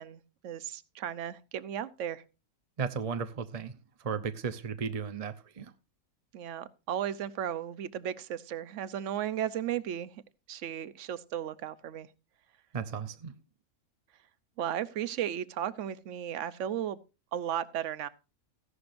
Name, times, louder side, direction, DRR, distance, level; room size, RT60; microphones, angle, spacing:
voice 1, 0.0-2.2 6.3-10.1 10.5-12.1 14.6-17.0 17.3-18.1, right 10 dB, 60° right, 1.0 m, -35 dB
voice 2, 2.8-3.7 4.0-5.7 12.7-13.3, right 6 dB, 40° right, 0.5 m, -35 dB
14.5 x 11.0 x 2.6 m
omnidirectional pair, 1.5 m